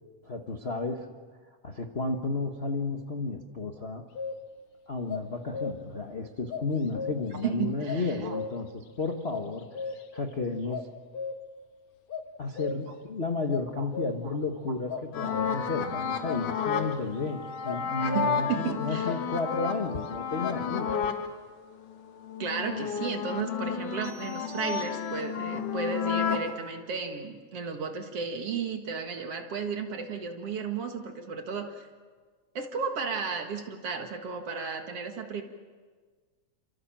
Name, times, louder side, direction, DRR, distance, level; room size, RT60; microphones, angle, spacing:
voice 1, 0.2-1.1 1.6-4.0 4.9-9.7 10.1-10.9 12.4-20.9, left 3 dB, 40° left, 2 dB, 0.9 m, -32 dB
sound 1, 4.2-4.6 5.1-6.0 6.5-7.5 7.9-8.8 9.3-10.3 10.7-11.6 12.1-13.1 13.5-14.4 14.9-15.8 16.3-17.1 17.6-18.6 19.1-20.1 20.4-21.2, left 5 dB, 65° left, 2.5 m, -37 dB
voice 2, 7.4-8.4 10.7-10.8 13.8-13.9 14.2-14.3 14.9-15.0 18.0-19.2 22.4-31.9 32.5-35.4, right 6 dB, 55° right, 5 dB, 2.6 m, -34 dB
sound 2, 15.1-21.3 21.7-26.5, left 7 dB, 80° left, 3.3 m, -32 dB
sound 3, 24.0-25.6, right 6 dB, 85° right, 4.4 m, -51 dB
30.0 x 26.5 x 7.5 m, 1.5 s
omnidirectional pair, 3.5 m